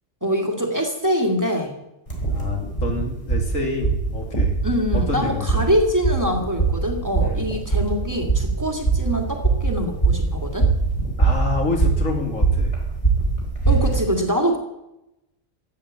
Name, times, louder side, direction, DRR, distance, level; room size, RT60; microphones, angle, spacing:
voice 1, 0.2-1.7 4.6-10.7 13.7-14.6, equal, 15° right, 2 dB, 1.9 m, -24 dB
sound 1, 2.1-14.0, right 4 dB, 25° left, 3.5 m, -22 dB
voice 2, 2.3-4.5 4.9-5.6 7.2-7.5 11.2-12.7, left 3 dB, 80° left, 2 dB, 2.8 m, -28 dB
13.5 x 9.0 x 7.3 m, 0.90 s
omnidirectional pair, 1.3 m